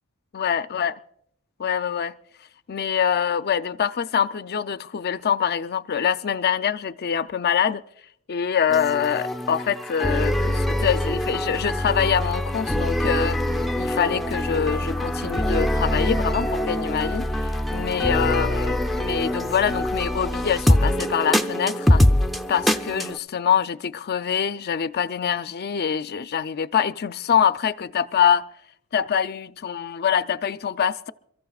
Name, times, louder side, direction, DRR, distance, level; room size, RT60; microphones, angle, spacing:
voice 1, 0.3-0.9 1.6-2.1 2.7-7.8 8.3-13.4 13.8-22.1 22.5-28.5 28.9-31.1, left 8 dB, 45° left, 0.5 m, -24 dB
sound 1, 8.7-23.2, left 1 dB, ahead, 0.6 m, -24 dB
28.0 x 14.0 x 2.4 m
head